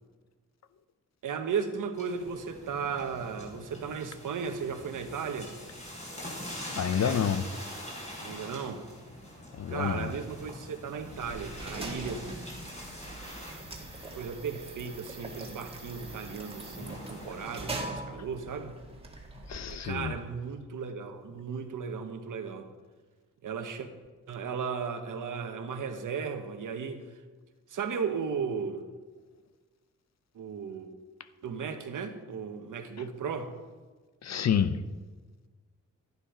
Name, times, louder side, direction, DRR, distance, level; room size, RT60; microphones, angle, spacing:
voice 1, 1.2-5.5 8.2-8.9 9.7-12.3 14.1-18.7 19.7-22.7 23.4-23.9 24.3-27.1 27.7-28.8 30.3-30.9 31.4-33.5, right 6 dB, 80° right, 1.3 m, -35 dB
sound 1, 1.9-17.8, equal, 20° left, 4.1 m, -44 dB
voice 2, 6.8-7.6 9.5-10.1 19.5-20.2 34.2-34.9, left 8 dB, 55° left, 0.7 m, -29 dB
sound 2, 10.9-20.3, right 2 dB, 20° right, 1.8 m, -42 dB
12.0 x 10.5 x 5.0 m
wide cardioid pair, 105°, 31 cm